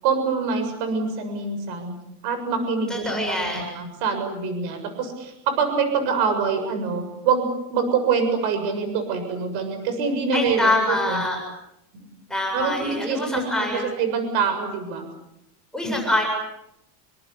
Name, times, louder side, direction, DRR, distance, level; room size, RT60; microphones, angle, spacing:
voice 1, 0.0-2.0 2.2-11.2 11.9-12.1 12.5-15.1 15.8-15.9, right 5 dB, 55° right, 8 dB, 7.2 m, -25 dB
voice 2, 2.9-3.7 10.3-11.4 12.3-13.9 15.7-16.2, left 1 dB, ahead, -1 dB, 7.7 m, -25 dB
28.5 x 25.0 x 8.4 m, 0.82 s
cardioid pair, 170°, 48 cm